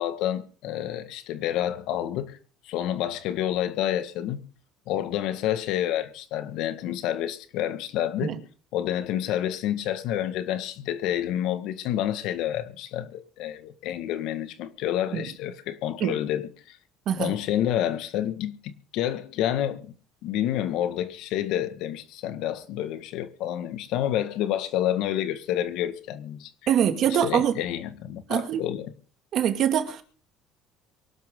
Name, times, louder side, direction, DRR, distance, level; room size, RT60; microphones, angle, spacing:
voice 1, 0.0-2.4 2.6-4.4 4.9-8.3 8.7-16.8 17.2-19.9 20.2-26.5 27.2-28.9, left 11 dB, 70° left, 1.8 m, -29 dB
voice 2, 26.7-27.6 28.3-28.6 29.3-30.0, right 9 dB, 55° right, 2.3 m, -24 dB
24.0 x 12.0 x 3.9 m
cardioid pair, 115°, 0 cm